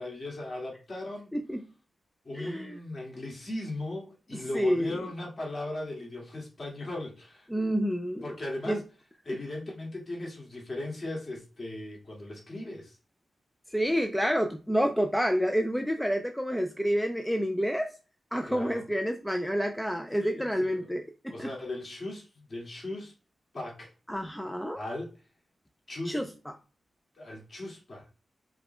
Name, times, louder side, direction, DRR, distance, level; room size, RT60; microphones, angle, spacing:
voice 1, 0.0-1.3 2.2-7.5 8.2-8.8 9.3-13.0 18.5-18.8 20.2-20.8 21.3-23.1 23.5-23.9 24.8-25.1 25.9-26.2 27.2-28.1, left 2 dB, 40° left, 1.9 m, -37 dB
voice 2, 1.3-1.7 2.3-2.8 4.3-5.0 7.5-8.3 8.7-8.8 13.7-17.9 18.3-21.5 24.1-24.8 26.0-26.5, equal, 5° left, 0.4 m, -29 dB
4.9 x 2.2 x 4.4 m
wide cardioid pair, 130°, 0 cm